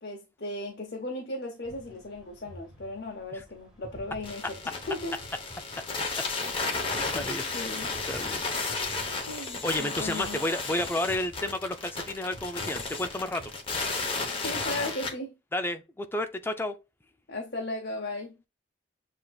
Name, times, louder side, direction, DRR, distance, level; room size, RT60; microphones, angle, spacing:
voice 1, 0.0-5.2 7.1-7.2 7.5-7.9 9.3-10.4 14.4-15.4 17.3-18.4, left 2 dB, 55° left, 0.8 m, -36 dB
sound 1, 1.6-14.8, equal, 5° right, 1.5 m, -50 dB
sound 2, 4.2-15.1, left 3 dB, 30° left, 0.8 m, -33 dB
voice 2, 7.1-7.4 8.1-8.4 9.6-13.5 15.5-16.8, left 1 dB, 10° left, 0.4 m, -31 dB
7.3 x 2.6 x 2.3 m
head